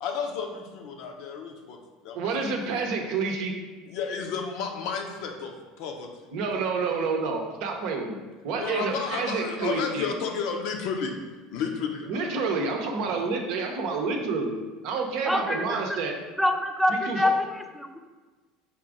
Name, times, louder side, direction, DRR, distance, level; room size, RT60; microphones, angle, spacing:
voice 1, 0.0-2.4 3.9-6.1 8.6-11.1 11.5-12.2 13.1-13.2, left 5 dB, 65° left, 3 dB, 0.6 m, -32 dB
voice 2, 2.1-3.6 6.3-8.2 8.4-10.1 12.1-16.1 16.9-17.3, right 4 dB, 65° right, 2 dB, 0.7 m, -29 dB
voice 3, 15.3-16.0 16.4-18.0, left 1 dB, ahead, 6 dB, 0.4 m, -26 dB
4.3 x 2.5 x 4.8 m, 1.3 s
hypercardioid pair, 85°, 0 cm